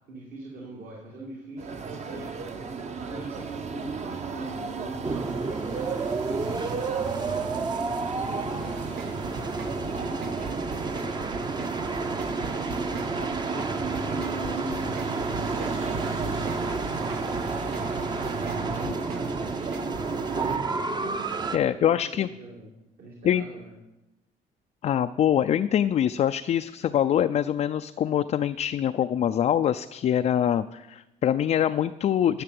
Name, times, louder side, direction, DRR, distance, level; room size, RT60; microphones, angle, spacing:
voice 1, 0.1-2.3 3.0-12.7 13.4-16.4 17.0-20.8 21.5-22.7 23.0-23.7, right 2 dB, 60° right, -2 dB, 2.4 m, -43 dB
sound 1, 1.6-20.6, right 4 dB, 40° right, 1.1 m, -35 dB
sound 2, 5.0-21.6, right 3 dB, 25° right, 0.8 m, -31 dB
sound 3, 8.8-20.0, right 4 dB, 75° right, 1.4 m, -41 dB
voice 2, 21.5-22.3 23.2-23.5 24.8-32.4, left 10 dB, 40° left, 9 dB, 0.4 m, -24 dB
11.5 x 6.6 x 7.7 m, 1.0 s
cardioid pair, 110°, 17 cm